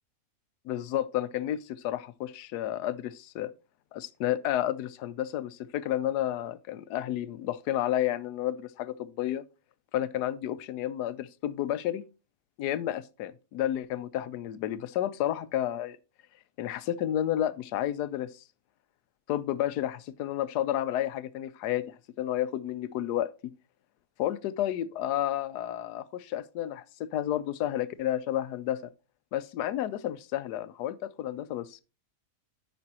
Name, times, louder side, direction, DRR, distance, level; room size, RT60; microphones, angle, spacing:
voice 1, 0.6-3.5 3.9-9.4 9.9-12.0 12.6-16.0 16.6-18.4 19.3-23.3 24.2-28.8 29.3-31.8, left 12 dB, 85° left, 1.2 m, -31 dB
13.5 x 5.3 x 2.8 m
omnidirectional pair, 1.7 m